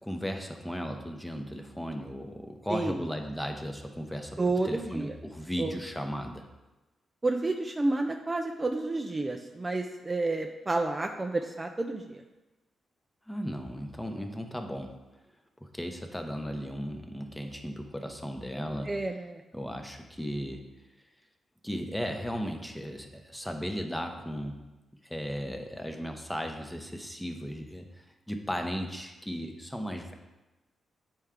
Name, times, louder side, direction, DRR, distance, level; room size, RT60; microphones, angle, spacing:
voice 1, 0.0-6.5 13.3-14.9 15.6-19.0 19.5-20.6 21.6-24.6 25.0-30.1, equal, 5° left, 4 dB, 0.8 m, -36 dB
voice 2, 4.4-5.1 5.6-5.7 7.2-12.2 18.9-19.4, right 2 dB, 20° right, 3 dB, 0.4 m, -30 dB
7.9 x 4.5 x 3.7 m, 1.1 s
cardioid pair, 95°, 0 cm